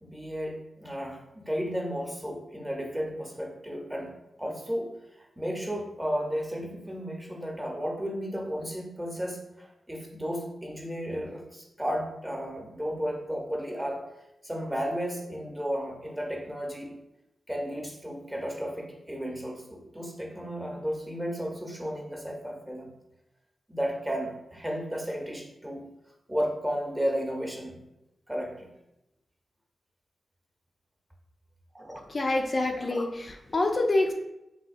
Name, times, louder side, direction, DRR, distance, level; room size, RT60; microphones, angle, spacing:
voice 1, 0.0-4.1 4.4-14.0 14.4-16.9 17.5-22.9 23.7-25.8 26.3-27.8 28.3-28.7 31.7-32.0, equal, 15° right, 0 dB, 0.8 m, -33 dB
voice 2, 32.1-34.1, left 2 dB, 50° left, 2 dB, 0.4 m, -26 dB
3.3 x 2.6 x 2.5 m, 0.89 s
cardioid pair, 45°, 0 cm